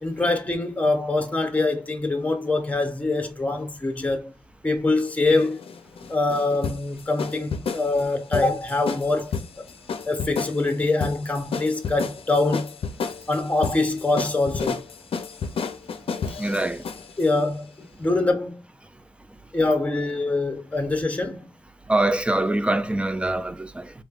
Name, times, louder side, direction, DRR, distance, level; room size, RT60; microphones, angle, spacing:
voice 1, 0.0-4.3 4.6-5.6 6.1-9.6 10.1-12.8 13.3-14.8 17.2-17.7 18.0-18.6 19.5-21.5, left 2 dB, 15° left, 0.9 m, -24 dB
sound 1, 5.3-17.3, left 5 dB, 75° left, 0.5 m, -31 dB
voice 2, 16.4-16.8 21.9-23.9, right 1 dB, 10° right, 0.4 m, -24 dB
3.7 x 3.2 x 2.4 m
wide cardioid pair, 95°, 10 cm